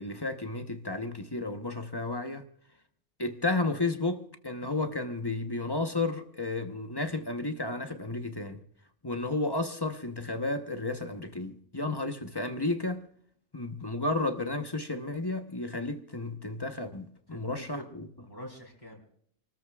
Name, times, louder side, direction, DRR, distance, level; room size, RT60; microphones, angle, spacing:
voice 1, 0.0-2.4 3.2-8.6 9.0-13.0 13.5-18.1, left 2 dB, 20° left, 1.0 m, -32 dB
voice 2, 17.3-17.9 18.2-19.0, equal, 40° left, 3.6 m, -45 dB
28.0 x 13.5 x 2.4 m
omnidirectional pair, 1.2 m